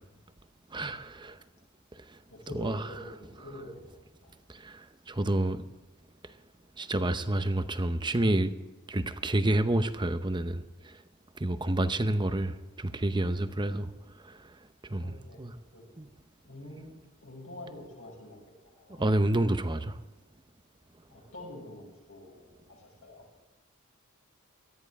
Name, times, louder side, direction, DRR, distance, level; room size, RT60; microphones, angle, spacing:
voice 1, 0.7-1.4 2.5-2.8 4.5-5.6 6.8-8.6 8.9-10.9 11.4-13.9 14.2-14.4 14.8-15.5 16.0-16.1 19.0-20.0, right 1 dB, 20° right, 0.8 m, -29 dB
voice 2, 2.3-3.8 4.2-4.3 12.1-12.4 15.0-15.9 16.4-16.9 17.2-19.1 21.1-23.3, left 1 dB, 75° left, 6.1 m, -46 dB
18.0 x 13.5 x 3.6 m
head